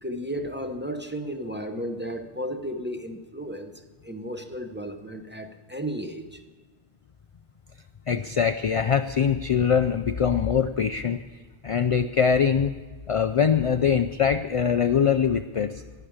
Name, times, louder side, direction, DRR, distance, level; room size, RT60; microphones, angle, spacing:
voice 1, 0.0-3.7 4.0-6.4, equal, 10° right, 6 dB, 0.8 m, -34 dB
voice 2, 8.1-11.2 11.6-12.7 13.1-15.8, left 7 dB, 55° left, 9 dB, 0.3 m, -23 dB
11.5 x 11.0 x 8.7 m, 1.3 s
omnidirectional pair, 1.1 m